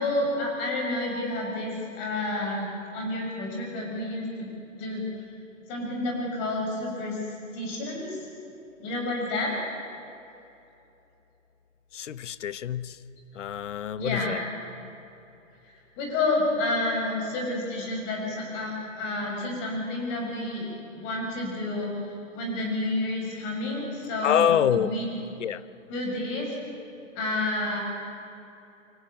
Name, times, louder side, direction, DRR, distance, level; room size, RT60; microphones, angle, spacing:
voice 1, 0.0-4.5 4.8-5.3 5.7-7.2 7.5-8.2 8.8-9.6 13.9-14.4 16.0-20.7 20.9-21.9 22.3-25.1 25.9-26.5 27.1-27.8, left 2 dB, 25° left, 0 dB, 6.6 m, -29 dB
voice 2, 11.9-13.0 13.3-14.4 24.2-24.9 25.4-25.6, left 9 dB, 65° left, 17 dB, 1.0 m, -26 dB
24.5 x 18.0 x 9.1 m, 2.9 s
hypercardioid pair, 150°, 39 cm